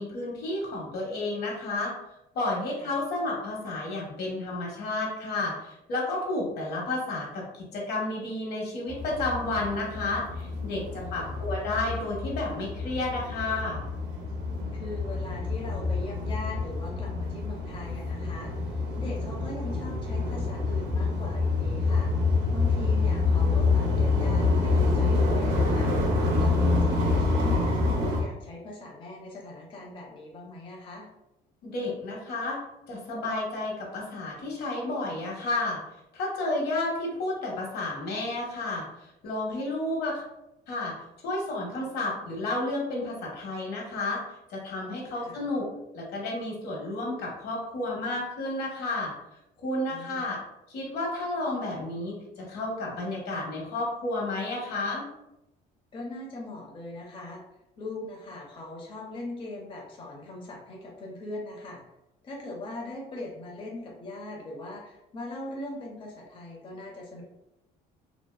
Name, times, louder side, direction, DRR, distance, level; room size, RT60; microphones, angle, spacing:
voice 1, 0.0-1.9 2.3-13.8 31.6-32.6 32.9-35.8 36.1-38.8 39.2-40.2 40.7-40.9 41.2-44.2 44.5-45.7 45.9-49.1 49.6-50.4 50.7-55.0, left 2 dB, 75° left, -2 dB, 0.9 m, -31 dB
sound 1, 8.9-28.2, left 3 dB, 90° right, 0.6 m, -27 dB
voice 2, 10.9-11.3 14.7-22.1 22.5-25.9 26.4-31.1 45.1-45.4 49.9-50.2 55.9-57.4 57.8-61.8 62.2-67.2, left 2 dB, 30° left, -2 dB, 0.5 m, -40 dB
2.7 x 2.1 x 2.2 m, 0.88 s
cardioid pair, 110°, 17 cm